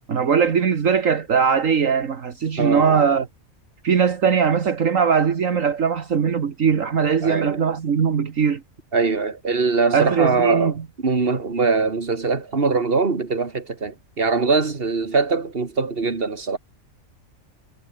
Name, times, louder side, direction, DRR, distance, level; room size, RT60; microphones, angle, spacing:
voice 1, 0.1-3.3 3.8-8.6 9.9-10.7, right 6 dB, 65° right, 1.8 m, -20 dB
voice 2, 2.6-3.1 7.2-7.6 8.9-10.7 11.0-16.6, right 4 dB, 40° right, 2.5 m, -22 dB
omnidirectional pair, 1.5 m